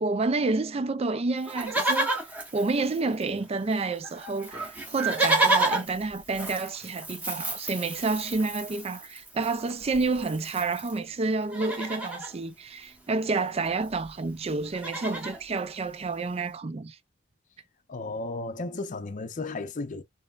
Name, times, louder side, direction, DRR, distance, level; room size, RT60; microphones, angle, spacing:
voice 1, 0.0-2.1 2.5-17.0, right 3 dB, 30° right, 0.4 m, -29 dB
Livestock farm animals working animals, 1.4-3.4 3.7-3.8 4.0-11.0 11.4-12.3 13.5-13.6 13.8-14.1 14.4-15.4 16.0-16.1, right 2 dB, 10° right, 1.0 m, -30 dB
voice 2, 17.9-20.0, left 3 dB, 40° left, 0.6 m, -34 dB
5.3 x 2.1 x 2.4 m
head